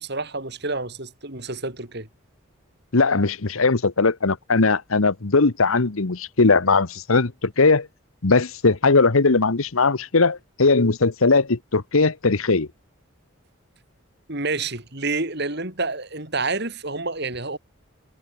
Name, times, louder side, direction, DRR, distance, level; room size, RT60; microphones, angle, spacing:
voice 1, 0.0-2.1 14.3-17.6, right 3 dB, 50° right, 3.8 m, -28 dB
voice 2, 2.9-7.9 8.2-12.7, left 3 dB, 80° left, 1.2 m, -19 dB
head